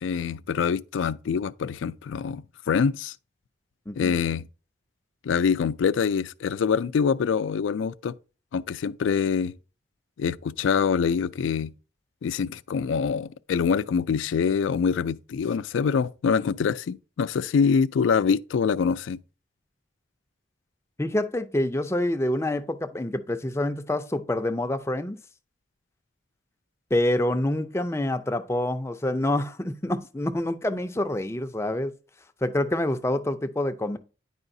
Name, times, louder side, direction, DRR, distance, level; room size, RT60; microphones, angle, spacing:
voice 1, 0.0-3.1 4.0-4.4 5.2-8.1 8.5-9.5 10.2-11.7 12.2-19.2, left 6 dB, 85° left, 0.3 m, -25 dB
voice 2, 21.0-25.2 26.9-31.9 32.4-34.0, left 1 dB, 15° left, 0.4 m, -27 dB
9.8 x 4.8 x 2.6 m
head